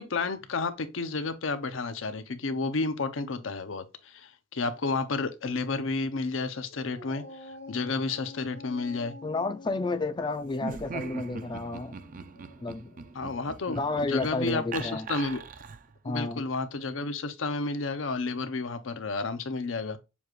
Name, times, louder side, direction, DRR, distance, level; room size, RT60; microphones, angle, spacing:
voice 1, 0.0-9.1 13.1-15.4 16.0-20.0, left 3 dB, 85° left, 0.7 m, -31 dB
Dog, 6.7-13.3, left 3 dB, 65° left, 1.0 m, -48 dB
voice 2, 9.2-12.0 12.6-12.9 13.7-15.1 16.0-16.4, left 3 dB, 25° left, 0.4 m, -31 dB
Laughter, 10.5-16.0, right 5 dB, 45° right, 0.4 m, -40 dB
7.0 x 2.4 x 3.0 m
head